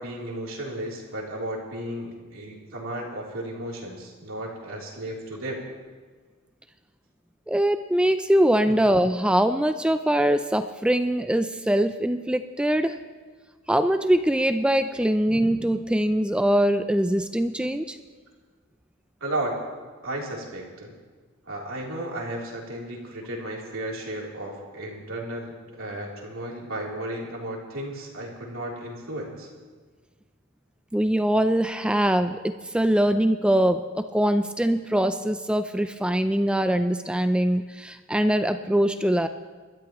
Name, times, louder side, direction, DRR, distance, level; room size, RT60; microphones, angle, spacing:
voice 1, 0.0-5.7 8.7-8.8 19.2-19.6 20.0-20.9 21.5-25.5 25.8-29.5, right 1 dB, 70° right, -2 dB, 3.4 m, -34 dB
voice 2, 7.5-13.0 13.7-18.0 30.9-39.3, right 1 dB, 5° right, 9 dB, 0.4 m, -22 dB
28.5 x 13.5 x 3.1 m, 1.5 s
head